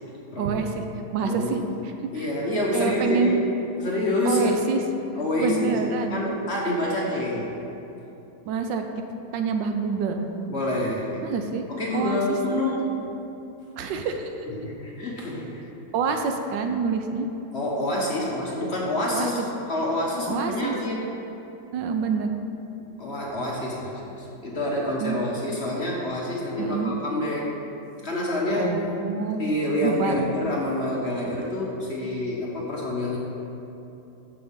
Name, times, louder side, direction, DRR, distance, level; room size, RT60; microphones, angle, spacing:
voice 1, 0.4-0.8 1.1-1.6 2.1-2.3 2.7-3.4 4.2-4.8 5.4-6.2 8.5-8.8 9.3-10.3 11.2-11.6 11.9-12.2 12.5-12.7 13.8-14.5 15.9-17.3 19.1-19.3 20.3-20.7 21.7-22.4 25.0-25.2 26.6-26.9 28.6-29.4 29.8-30.2, right 5 dB, 75° right, 5 dB, 1.3 m, -26 dB
voice 2, 0.9-1.5 2.1-3.4 3.8-4.6 5.2-5.8 6.1-7.5 10.5-11.2 11.7-13.0 14.4-15.6 17.5-19.4 19.7-21.0 23.0-27.5 28.0-28.7 29.4-33.2, left 1 dB, 40° left, -3 dB, 1.1 m, -27 dB
13.5 x 6.1 x 3.6 m, 3.0 s
omnidirectional pair, 2.1 m